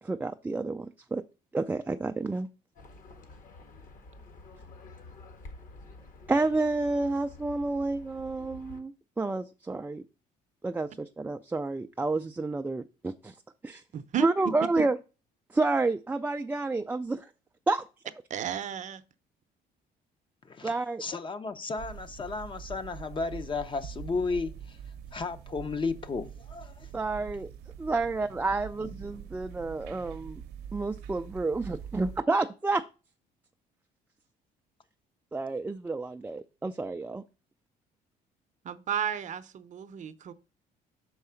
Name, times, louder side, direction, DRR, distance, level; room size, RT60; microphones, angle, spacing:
voice 1, 0.0-1.2 1.5-2.5 6.3-10.0 10.6-13.4 13.6-13.8 14.2-15.0 15.5-17.3 17.7-17.8 20.6-21.0 26.9-27.5 27.8-30.4 30.7-32.8 35.3-37.2, right 3 dB, 10° right, 0.3 m, -30 dB
Livestock farm animals working animals, 2.8-8.8, left 2 dB, 55° left, 1.5 m, -49 dB
voice 2, 13.9-14.3 14.8-14.9 18.3-19.0 38.6-40.3, right 9 dB, 45° right, 0.7 m, -33 dB
voice 3, 21.0-24.8 25.1-26.9 28.8-29.2, left 4 dB, 30° left, 0.7 m, -34 dB
sound 1, 21.8-32.2, right 8 dB, 85° right, 0.7 m, -44 dB
5.9 x 4.7 x 5.6 m
cardioid pair, 110°, 17 cm